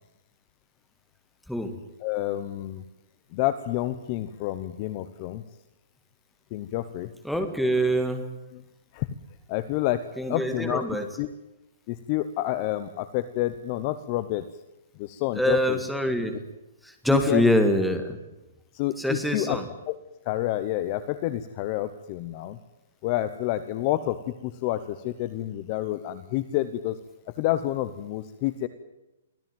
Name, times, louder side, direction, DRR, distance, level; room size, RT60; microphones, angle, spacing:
voice 1, 2.0-2.8 3.3-5.4 6.5-7.1 8.5-8.6 8.9-9.1 9.5-10.0 10.3-10.8 11.2-11.3 11.9-14.4 14.9-15.8 17.1-17.5 18.7-19.6 19.9-20.0 20.2-22.6 23.0-27.0 27.3-28.7, left 14 dB, 25° left, 13 dB, 0.9 m, -29 dB
voice 2, 7.2-8.3 10.2-11.1 15.3-16.4 16.8-18.2 19.0-19.6, equal, ahead, 6 dB, 1.8 m, -24 dB
24.0 x 16.0 x 9.2 m, 0.96 s
hypercardioid pair, 180°, 0 cm